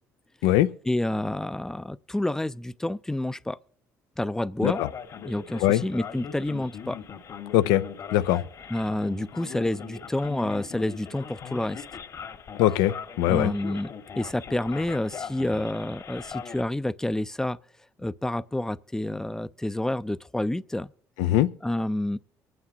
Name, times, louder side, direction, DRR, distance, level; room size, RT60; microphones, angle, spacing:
voice 1, 0.9-3.6 4.2-4.8 5.2-7.0 8.7-11.8 13.3-13.9 14.2-17.6 18.0-20.9 21.6-22.2, left 1 dB, 5° left, 0.5 m, -29 dB
Male speech man speaking, 4.6-16.6, left 7 dB, 55° left, 1.7 m, -40 dB
voice 2, 7.5-7.8 8.1-8.4 12.6-13.5 21.2-21.5, left 13 dB, 80° left, 0.5 m, -21 dB
24.0 x 9.5 x 2.9 m
supercardioid pair, 65°, 7 cm